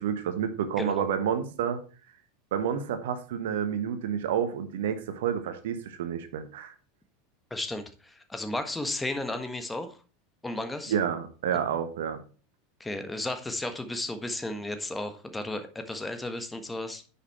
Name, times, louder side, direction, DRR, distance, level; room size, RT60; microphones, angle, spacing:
voice 1, 0.0-1.8 2.5-6.7 10.9-12.2, right 8 dB, 65° right, 9 dB, 1.2 m, -29 dB
voice 2, 7.5-9.9 10.4-10.9 12.8-17.0, left 2 dB, 10° left, 8 dB, 1.4 m, -34 dB
9.9 x 5.8 x 4.4 m, 0.36 s
figure-of-eight pair, 85°, 0 cm